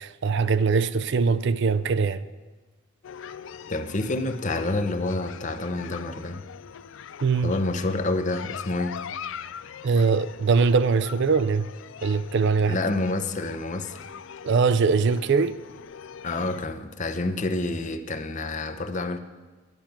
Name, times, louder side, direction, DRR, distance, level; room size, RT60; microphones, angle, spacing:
voice 1, 0.0-2.3 7.2-7.5 9.8-11.7 12.0-12.8 14.4-15.6, right 5 dB, 55° right, 0.4 m, -22 dB
sound 1, 3.0-16.7, left 7 dB, 60° left, 0.4 m, -42 dB
voice 2, 3.7-6.4 7.4-9.0 12.7-14.0 16.2-19.2, left 2 dB, 35° left, 0.7 m, -28 dB
11.5 x 10.5 x 5.9 m
head